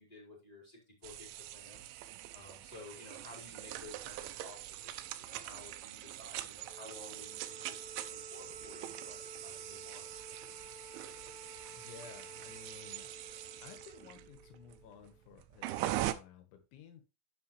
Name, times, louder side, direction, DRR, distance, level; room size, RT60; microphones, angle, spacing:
voice 1, 0.0-1.8 2.3-10.1, left 2 dB, 10° left, -2 dB, 4.2 m, -54 dB
sound 1, 1.0-16.1, right 14 dB, 85° right, 3.1 m, -43 dB
Wind instrument woodwind instrument, 6.6-15.2, equal, 20° right, 2.4 m, -54 dB
voice 2, 11.7-13.1 13.6-17.0, left 7 dB, 80° left, 7 dB, 3.9 m, -55 dB
9.9 x 7.3 x 3.3 m, 0.27 s
omnidirectional pair, 5.3 m